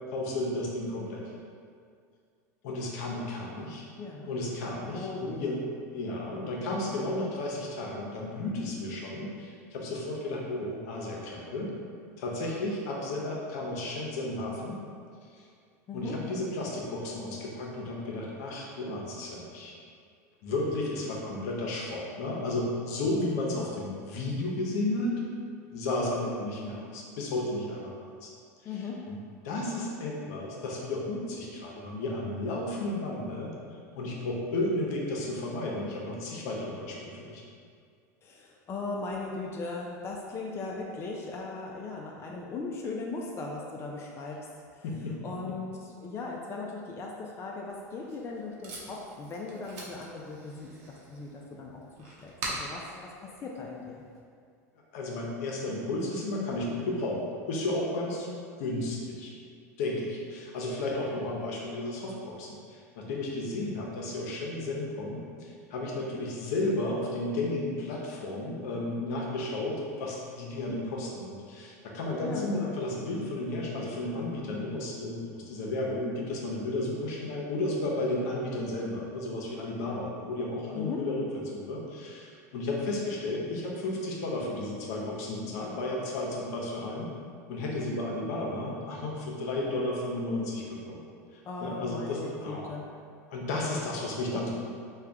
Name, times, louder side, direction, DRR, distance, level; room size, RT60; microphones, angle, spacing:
voice 1, 0.1-1.3 2.6-3.8 4.3-5.7 5.9-11.7 12.2-14.8 15.3-15.4 15.9-19.7 20.4-25.2 25.7-27.9 28.2-28.3 28.6-29.2 29.4-33.5 33.9-37.4 44.8-45.2 45.5-45.6 54.9-57.2 57.5-58.3 58.6-59.3 59.8-87.1 87.5-91.0 91.3-92.7 93.3-94.5, left 2 dB, 70° left, -2 dB, 0.7 m, -33 dB
voice 2, 4.0-4.3 4.9-5.6 15.9-16.2 23.6-23.7 28.6-29.0 38.2-44.4 44.8-44.9 45.2-54.0 72.2-72.5 80.7-81.0 91.5-92.9 94.3-94.5, left 3 dB, 30° left, -1 dB, 0.4 m, -38 dB
Packing tape duct tape, 47.7-54.2, right 2 dB, 75° right, 0.9 m, -43 dB
3.2 x 2.3 x 3.7 m, 2.2 s
hypercardioid pair, 105°, 9 cm